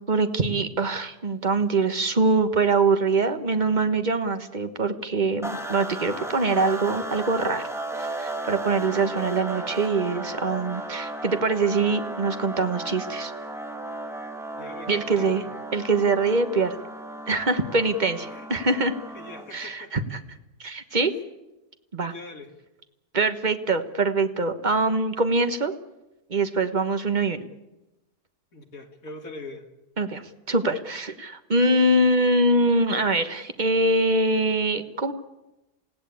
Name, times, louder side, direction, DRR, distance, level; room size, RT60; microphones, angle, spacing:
voice 1, 0.1-7.6 7.9-13.3 14.9-15.4 15.7-16.8 17.3-18.9 19.5-20.2 20.6-21.1 21.9-22.1 23.1-25.7 26.3-27.5 30.0-35.1, right 3 dB, 30° right, 8 dB, 1.5 m, -23 dB
sound 1, 5.4-19.6, right 1 dB, ahead, 2.4 m, -35 dB
voice 2, 14.6-15.5 18.3-18.7 19.1-19.9 21.1-21.2 22.1-22.5 28.5-29.7, left 2 dB, 60° left, 4 dB, 2.9 m, -42 dB
28.5 x 16.5 x 8.6 m, 0.98 s
omnidirectional pair, 1.7 m